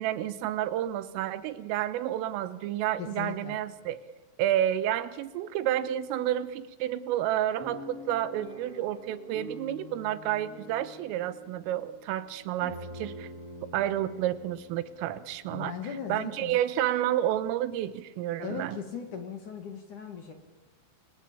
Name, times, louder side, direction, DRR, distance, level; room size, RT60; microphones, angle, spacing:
voice 1, 0.0-4.0 4.4-13.3 13.7-15.7 16.1-18.8, right 12 dB, 85° right, 14 dB, 3.8 m, -30 dB
voice 2, 3.0-3.6 15.5-16.6 18.4-20.3, left 7 dB, 50° left, 6 dB, 2.8 m, -38 dB
sound 1, 7.6-15.7 16.3-16.4 16.7-16.9, equal, 30° left, 7.2 m, -46 dB
29.5 x 23.5 x 8.6 m, 1.1 s
omnidirectional pair, 5.8 m